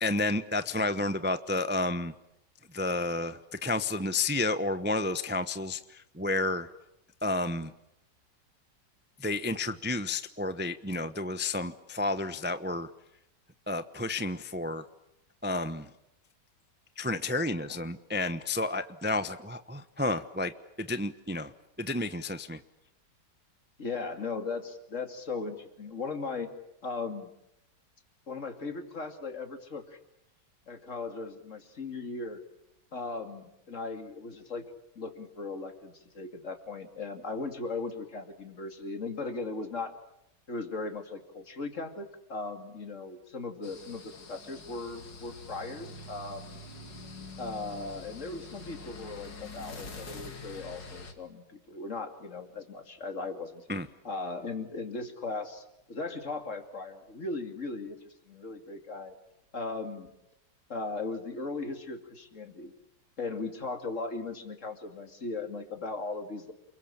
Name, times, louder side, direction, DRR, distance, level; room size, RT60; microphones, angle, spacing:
voice 1, 0.0-2.1 2.7-6.7 7.2-7.7 9.2-12.9 13.7-14.8 15.4-15.9 17.0-20.5 20.8-21.5 21.8-22.6 53.7-53.9, left 2 dB, 10° right, 11 dB, 0.5 m, -31 dB
voice 2, 23.8-26.5 26.8-27.3 28.3-30.0 30.7-32.4 32.9-34.7 35.0-39.9 40.5-46.6 47.4-53.6 54.0-59.2 59.5-60.1 60.7-62.7 63.2-66.5, left 3 dB, 45° left, 6 dB, 2.9 m, -38 dB
sound 1, 43.6-51.1, left 3 dB, 85° left, 3.3 m, -45 dB
29.0 x 22.5 x 8.7 m, 0.83 s
omnidirectional pair, 1.9 m